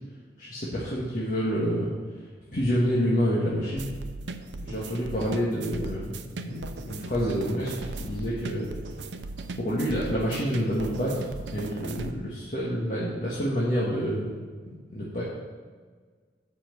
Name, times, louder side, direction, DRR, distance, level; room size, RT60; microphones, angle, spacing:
voice 1, 0.4-1.9 2.5-3.9 4.6-8.7 9.6-14.3 14.6-15.2, equal, 45° left, -7 dB, 1.5 m, -28 dB
sound 1, 3.8-12.1, right 3 dB, 90° right, 0.6 m, -38 dB
7.7 x 5.7 x 6.8 m, 1.5 s
head